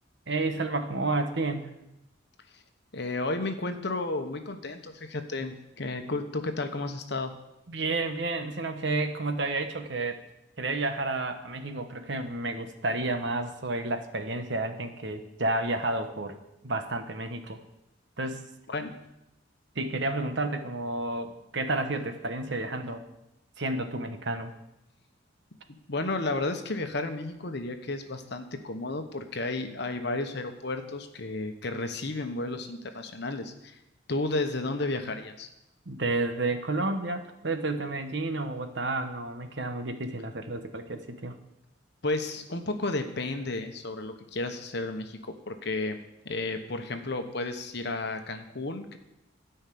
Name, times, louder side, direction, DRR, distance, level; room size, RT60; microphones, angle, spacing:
voice 1, 0.3-1.7 7.7-10.2 10.6-16.3 16.6-17.6 18.2-18.4 19.7-23.1 23.6-24.5 35.9-41.3, right 2 dB, 60° right, 7 dB, 1.2 m, -31 dB
voice 2, 2.9-7.3 18.7-18.9 25.9-33.8 34.1-35.5 42.0-46.0 46.2-49.0, left 2 dB, 55° left, 7 dB, 1.1 m, -32 dB
13.0 x 5.7 x 8.5 m, 0.88 s
head